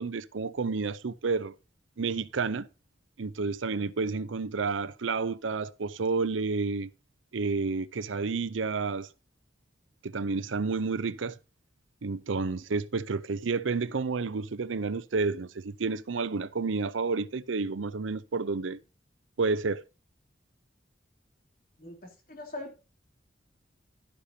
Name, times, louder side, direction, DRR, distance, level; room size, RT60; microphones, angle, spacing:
voice 1, 0.0-1.5 2.0-2.7 3.2-6.9 7.3-9.1 10.0-11.4 12.0-18.8 19.4-19.8, right 4 dB, 85° right, 0.6 m, -30 dB
voice 2, 22.3-22.8, left 2 dB, 45° left, 3.4 m, -40 dB
11.5 x 10.0 x 2.8 m
head